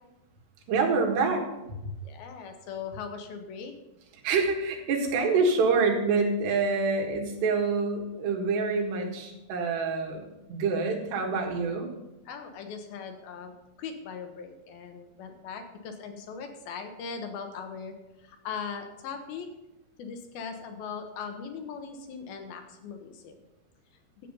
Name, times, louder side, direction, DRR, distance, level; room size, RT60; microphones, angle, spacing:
voice 1, 0.7-1.5 4.2-10.2 10.5-11.9, right 4 dB, 85° right, 1 dB, 4.0 m, -26 dB
voice 2, 2.0-3.7 12.3-19.5 20.0-23.4, left 6 dB, 70° left, 5 dB, 2.7 m, -39 dB
12.0 x 8.4 x 5.5 m, 0.99 s
omnidirectional pair, 4.7 m